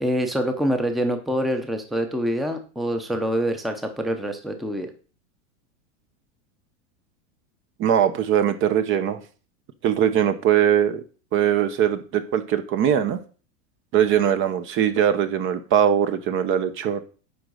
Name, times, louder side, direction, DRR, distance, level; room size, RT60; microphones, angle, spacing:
voice 1, 0.0-4.9, equal, ahead, 6 dB, 0.7 m, -25 dB
voice 2, 7.8-9.2 9.8-11.0 11.3-13.2 13.9-17.0, right 9 dB, 30° right, 11 dB, 0.8 m, -21 dB
10.5 x 3.8 x 6.3 m, 0.37 s
supercardioid pair, 140°, 39 cm